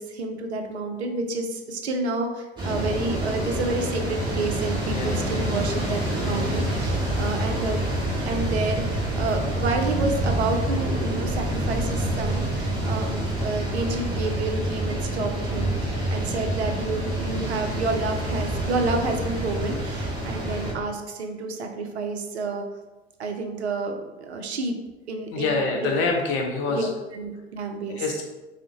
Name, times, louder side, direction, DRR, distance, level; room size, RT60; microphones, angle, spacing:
voice 1, 0.0-7.8 8.2-22.6 23.2-24.7 25.1-25.9 26.7-28.0, right 3 dB, 80° right, 5 dB, 0.5 m, -29 dB
sound 1, 2.6-20.7, right 1 dB, 15° right, 0.8 m, -27 dB
voice 2, 25.3-26.9 27.9-28.2, left 3 dB, 40° left, 1 dB, 0.5 m, -26 dB
3.5 x 2.1 x 2.7 m, 1.1 s
figure-of-eight pair, 75°, 33 cm